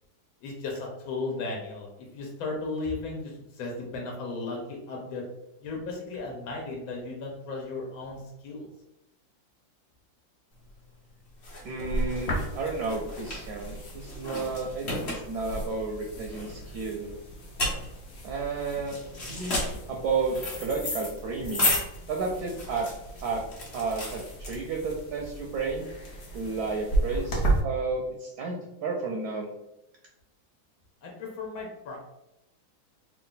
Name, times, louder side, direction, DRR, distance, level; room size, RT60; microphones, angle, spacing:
voice 1, 0.4-5.2 5.6-8.7 31.0-32.0, left 3 dB, 90° left, 0 dB, 1.6 m, -35 dB
sound 1, 10.6-25.0, left 1 dB, 40° left, 1.1 m, -33 dB
voice 2, 11.6-17.1 18.2-21.7 22.1-22.9 23.2-23.4 23.7-25.9 26.3-29.5, right 4 dB, 70° right, 1 dB, 1.0 m, -32 dB
sound 2, 12.2-27.6, right 2 dB, 65° left, 0.6 m, -35 dB
3.6 x 2.4 x 3.8 m, 0.90 s
omnidirectional pair, 2.1 m